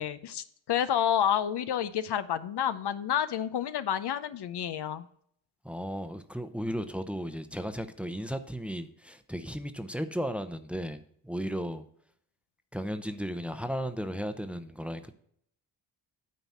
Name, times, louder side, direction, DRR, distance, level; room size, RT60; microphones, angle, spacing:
voice 1, 0.0-5.1, left 9 dB, 60° left, 13 dB, 0.7 m, -29 dB
voice 2, 5.6-11.8 12.7-15.1, equal, 5° right, 9 dB, 0.8 m, -35 dB
9.3 x 4.1 x 7.2 m, 0.67 s
cardioid pair, 65°, 44 cm